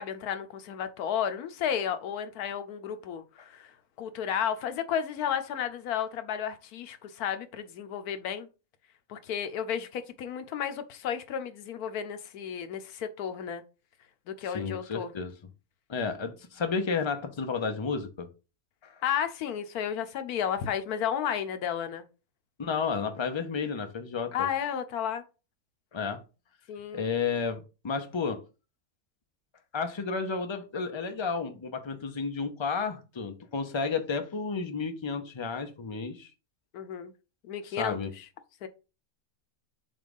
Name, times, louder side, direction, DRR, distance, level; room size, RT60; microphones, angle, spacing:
voice 1, 0.0-8.5 9.1-13.6 14.3-15.1 19.0-22.1 24.3-25.2 26.7-27.0 36.7-37.1 37.4-38.0 38.6-38.7, left 8 dB, 90° left, 1.2 m, -33 dB
voice 2, 14.4-15.3 15.9-18.3 18.8-18.9 22.6-24.5 25.9-26.2 26.9-28.4 29.7-36.3 37.8-38.1, left 5 dB, 30° left, 0.5 m, -32 dB
7.3 x 2.4 x 5.2 m
omnidirectional pair, 1.6 m